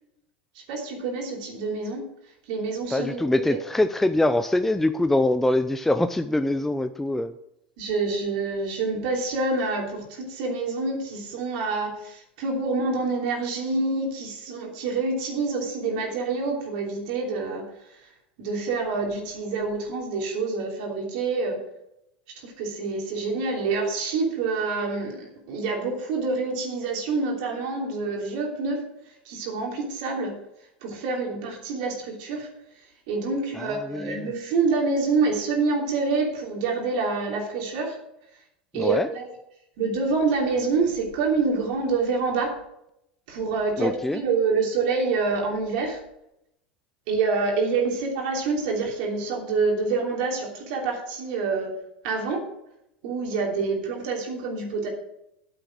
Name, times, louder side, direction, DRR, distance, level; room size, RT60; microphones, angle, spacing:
voice 1, 0.7-2.0 2.5-3.6 7.8-17.6 18.4-21.6 22.4-28.8 29.2-30.3 30.8-32.5 33.1-38.0 38.7-39.3 39.8-42.5 43.3-46.0 47.1-51.7 52.0-52.4 53.0-54.9, right 4 dB, 60° right, 0 dB, 3.1 m, -27 dB
voice 2, 2.9-7.3 33.6-34.3 38.8-39.1 43.8-44.2, left 1 dB, 5° left, 10 dB, 0.5 m, -24 dB
9.2 x 7.7 x 6.1 m, 0.81 s
hypercardioid pair, 85°, 5 cm